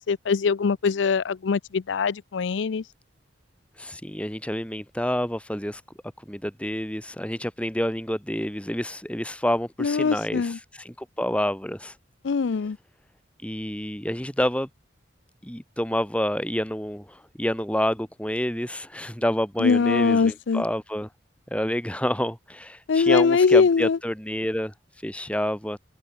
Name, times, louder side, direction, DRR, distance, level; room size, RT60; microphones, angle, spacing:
voice 1, 0.0-2.8 9.8-10.6 12.2-12.8 19.6-20.6 22.9-24.0, left 5 dB, 75° left, 0.5 m, -22 dB
voice 2, 3.8-5.8 6.3-12.0 12.6-12.7 13.4-14.7 15.4-21.1 21.5-25.8, equal, 5° left, 4.0 m, -28 dB
head